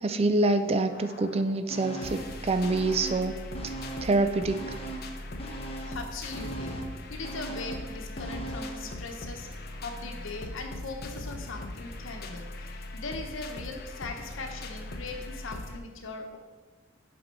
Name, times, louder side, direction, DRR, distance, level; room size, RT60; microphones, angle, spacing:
voice 1, 0.0-3.4 4.0-4.6, right 2 dB, 30° right, 8 dB, 0.4 m, -26 dB
sound 1, 0.9-15.8, left 2 dB, 50° left, 0.7 m, -40 dB
sound 2, 1.7-2.4 2.6-4.2 4.5-8.8 9.2-9.3, right 2 dB, 30° left, 1.1 m, -39 dB
voice 2, 5.9-6.7 7.1-9.5 9.8-12.7 12.9-16.4, left 3 dB, 85° left, 4 dB, 1.0 m, -40 dB
6.9 x 5.1 x 4.5 m, 1.4 s
head